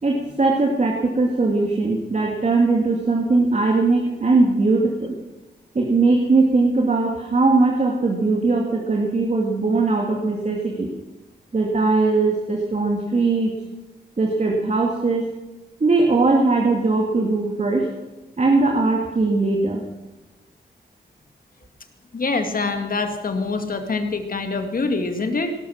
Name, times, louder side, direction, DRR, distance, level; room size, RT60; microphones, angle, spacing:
voice 1, 0.0-5.2 5.7-10.9 11.5-13.6 14.2-15.3 15.8-17.9 18.4-19.8, right 3 dB, 40° right, 0 dB, 2.3 m, -20 dB
voice 2, 22.1-25.5, left 3 dB, 55° left, 6 dB, 2.2 m, -25 dB
17.5 x 13.0 x 6.4 m, 1.1 s
wide cardioid pair, 100°, 17 cm